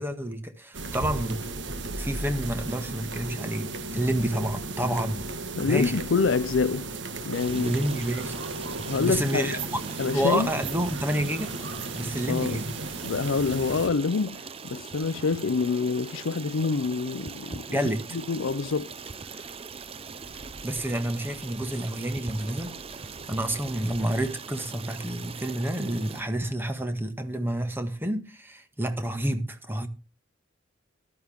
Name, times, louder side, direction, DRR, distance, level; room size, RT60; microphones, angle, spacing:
voice 1, 0.0-1.4 2.0-5.3 5.7-6.0 7.5-8.4 9.0-11.6 11.9-12.7 17.7-18.1 20.6-29.9, right 1 dB, 10° right, 1.5 m, -29 dB
sound 1, 0.7-13.9, right 3 dB, 60° right, 1.5 m, -35 dB
voice 2, 5.6-6.9 7.2-7.7 8.9-9.6 10.0-10.5 12.3-12.6 13.0-17.7 18.1-18.9, left 4 dB, 70° left, 0.5 m, -26 dB
Stream, 7.3-26.2, right 5 dB, 30° right, 0.6 m, -41 dB
sound 2, 18.0-24.3, right 1 dB, 85° right, 3.1 m, -52 dB
14.0 x 12.0 x 3.5 m
head